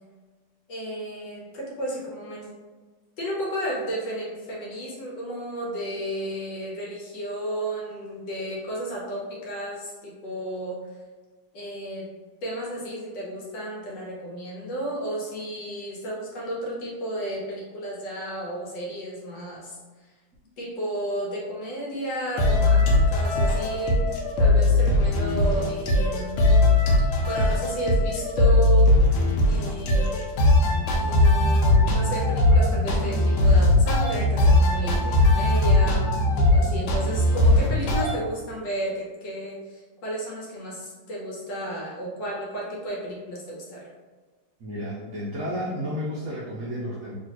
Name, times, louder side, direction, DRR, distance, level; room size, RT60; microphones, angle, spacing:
voice 1, 0.7-2.5 3.2-10.8 11.5-12.1 12.4-19.8 20.6-26.4 27.3-29.0 29.5-30.1 30.9-43.9, right 1 dB, 65° left, -3 dB, 1.3 m, -33 dB
sound 1, 22.4-38.1, left 2 dB, 85° left, 1.4 m, -20 dB
voice 2, 44.6-47.1, equal, 85° right, -6 dB, 0.7 m, -32 dB
3.2 x 2.9 x 2.9 m, 1.3 s
omnidirectional pair, 2.3 m